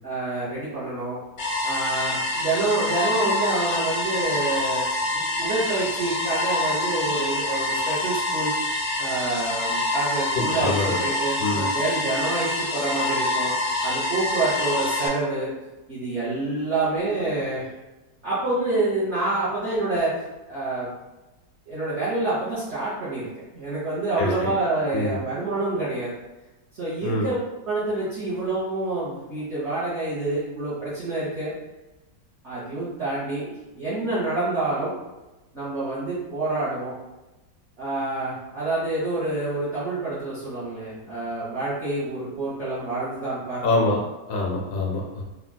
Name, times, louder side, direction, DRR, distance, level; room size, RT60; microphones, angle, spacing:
voice 1, 0.0-1.2 1.6-4.8 5.1-8.5 9.0-13.5 13.8-15.5 15.9-17.7 18.2-20.9 21.7-26.1 26.7-27.4 27.7-31.5 32.4-34.9 35.5-36.9 37.8-43.9, right 2 dB, 50° right, -10 dB, 0.9 m, -27 dB
sound 1, 1.4-15.1, left 2 dB, 85° left, 1.4 m, -26 dB
voice 2, 10.3-11.0 11.4-11.7 24.2-24.5 24.9-25.2 27.0-27.3 43.6-44.0 44.3-45.2, left 2 dB, 70° left, -1 dB, 0.9 m, -25 dB
3.6 x 2.2 x 2.2 m, 1.1 s
omnidirectional pair, 1.9 m